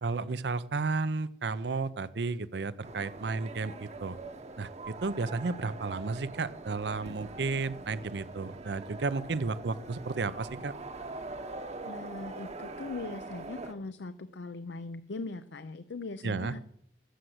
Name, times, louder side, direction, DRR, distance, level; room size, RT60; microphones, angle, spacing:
voice 1, 0.0-4.2 4.6-10.7 16.2-16.5, right 3 dB, 70° right, 17 dB, 0.6 m, -33 dB
sound 1, 2.8-13.7, right 2 dB, 40° right, 1.0 m, -43 dB
voice 2, 11.8-16.6, left 3 dB, 80° left, 12 dB, 0.6 m, -40 dB
13.0 x 7.9 x 7.9 m, 0.73 s
head